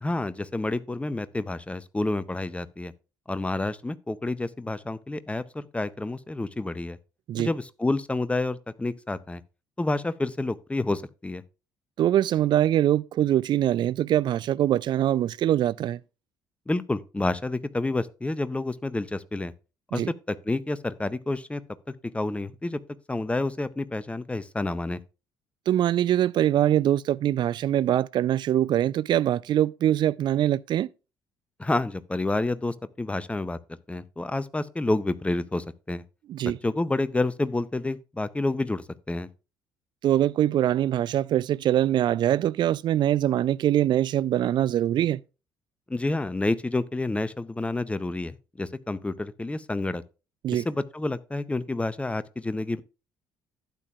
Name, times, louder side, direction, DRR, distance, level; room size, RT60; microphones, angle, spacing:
voice 1, 0.0-2.9 3.3-7.0 7.4-9.4 9.8-11.4 16.7-19.5 19.9-20.0 20.3-21.6 22.1-22.8 23.1-25.0 31.6-33.6 33.9-36.0 36.6-39.3 45.9-50.0 50.5-52.8, left 2 dB, 10° left, 0.6 m, -29 dB
voice 2, 12.0-16.0 19.9-20.1 25.7-30.9 36.3-36.6 40.0-45.2 50.4-50.7, right 12 dB, 45° right, 0.4 m, -23 dB
12.0 x 8.9 x 2.4 m
figure-of-eight pair, 50°, 10 cm